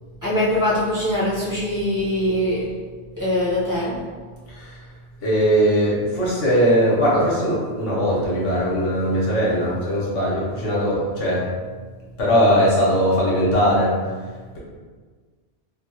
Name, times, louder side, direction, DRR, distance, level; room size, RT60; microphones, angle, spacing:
voice 1, 0.2-2.7 3.2-4.0, left 1 dB, 20° right, -11 dB, 0.8 m, -22 dB
voice 2, 5.2-11.5 12.2-13.9, equal, 75° left, -6 dB, 1.2 m, -20 dB
3.2 x 2.2 x 2.8 m, 1.5 s
omnidirectional pair, 1.2 m